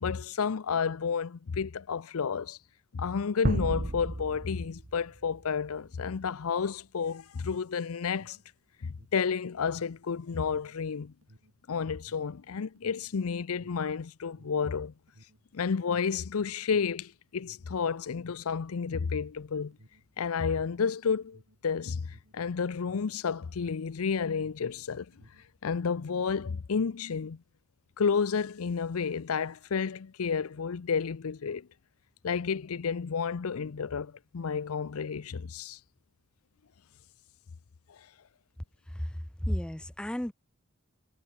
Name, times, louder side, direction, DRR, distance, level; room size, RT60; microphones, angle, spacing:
voice 1, 0.0-2.6 2.9-8.4 8.8-11.1 11.7-14.9 15.5-19.8 20.2-25.1 25.6-27.4 28.0-31.7 32.2-35.8, left 6 dB, 90° left, 0.6 m, -31 dB
sound 1, 3.4-5.9, right 1 dB, 40° right, 1.2 m, -32 dB
Alarm, 7.3-24.8 25.1-26.3, equal, 75° right, 5.9 m, -60 dB
voice 2, 38.9-40.3, equal, 5° left, 0.4 m, -33 dB
head